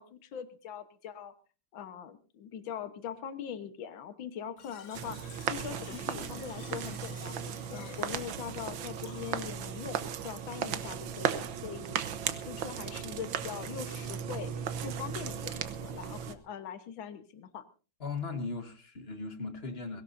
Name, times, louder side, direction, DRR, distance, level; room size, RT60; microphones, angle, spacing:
voice 1, 0.0-1.3 1.7-7.4 7.7-10.0 10.2-12.0 12.5-17.6, left 8 dB, 70° left, 2.0 m, -42 dB
Fill (with liquid), 4.6-9.6, left 8 dB, 50° left, 1.0 m, -51 dB
sound 1, 4.9-16.3, right 8 dB, 75° right, 1.7 m, -36 dB
voice 2, 18.0-20.0, left 4 dB, 30° left, 1.7 m, -37 dB
22.5 x 17.0 x 2.7 m
omnidirectional pair, 2.2 m